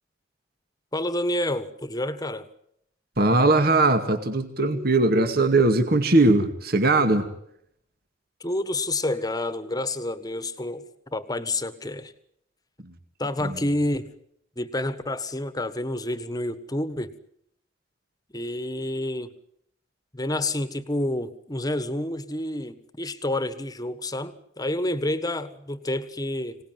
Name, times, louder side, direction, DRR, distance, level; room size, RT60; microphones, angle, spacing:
voice 1, 0.9-2.4 8.4-10.8 11.1-12.1 13.2-14.1 14.6-17.1 18.3-19.3 20.1-26.6, left 1 dB, 20° left, 13 dB, 1.5 m, -29 dB
voice 2, 3.2-7.3 13.4-13.6, right 2 dB, 55° right, 7 dB, 2.2 m, -20 dB
25.5 x 18.5 x 9.4 m, 0.73 s
head